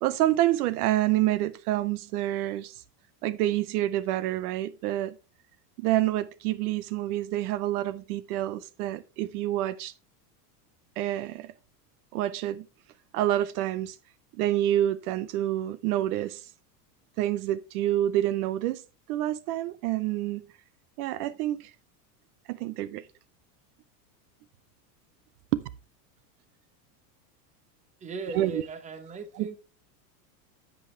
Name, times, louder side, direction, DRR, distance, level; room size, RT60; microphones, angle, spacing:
voice 1, 0.0-2.8 3.2-5.2 5.8-9.9 11.0-11.5 12.1-12.7 13.1-14.0 14.4-16.4 17.2-18.8 19.1-20.4 21.0-21.7 22.5-23.1 25.5-25.6 28.3-28.6 29.3-29.5, right 14 dB, 65° right, 0.7 m, -27 dB
voice 2, 28.0-29.6, right 3 dB, 15° right, 0.8 m, -38 dB
8.1 x 7.1 x 3.2 m
supercardioid pair, 130°, 48 cm